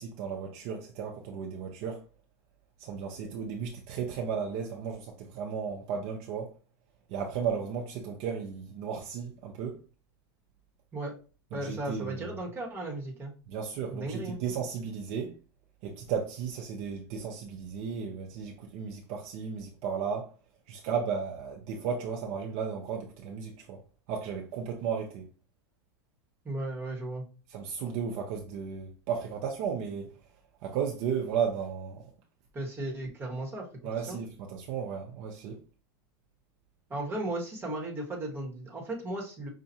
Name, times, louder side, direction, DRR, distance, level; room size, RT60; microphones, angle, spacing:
voice 1, 0.0-2.0 2.8-6.5 7.1-9.8 11.5-12.3 13.5-15.4 15.8-20.3 20.7-23.8 24.1-25.3 27.5-30.2 30.6-32.0 33.8-35.6, right 6 dB, 50° right, 0.7 m, -34 dB
voice 2, 11.5-13.3 13.9-14.4 26.4-27.2 32.5-33.7 34.1-34.2 36.9-39.5, right 1 dB, 15° right, 1.4 m, -35 dB
5.7 x 2.4 x 2.7 m
supercardioid pair, 135°, 14 cm